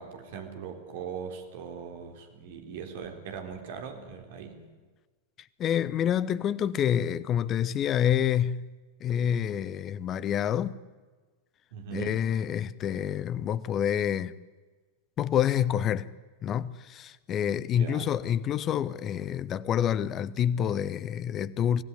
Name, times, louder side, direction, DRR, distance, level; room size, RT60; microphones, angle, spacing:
voice 1, 0.0-4.6 11.7-12.2 17.7-18.1, right 6 dB, 55° right, 3.7 m, -40 dB
voice 2, 5.6-8.7 9.0-10.8 11.9-14.3 15.2-16.1 16.4-21.8, left 9 dB, 30° left, 0.8 m, -27 dB
25.0 x 17.0 x 9.9 m
figure-of-eight pair, 90°, 0 cm